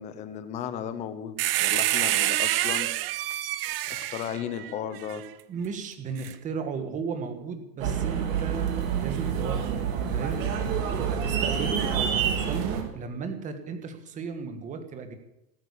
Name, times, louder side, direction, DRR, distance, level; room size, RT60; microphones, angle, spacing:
voice 1, 0.0-2.9 3.9-5.2, left 9 dB, 15° left, 12 dB, 0.7 m, -35 dB
sound 1, 1.4-5.2 6.2-6.3, right 15 dB, 35° right, 0.6 m, -27 dB
voice 2, 5.5-10.4 10.7-15.2, right 5 dB, 15° right, 7 dB, 1.6 m, -35 dB
sound 2, 7.8-12.8, right 7 dB, 55° right, 4.0 m, -27 dB
19.0 x 8.9 x 8.6 m, 0.87 s
supercardioid pair, 170°, 49 cm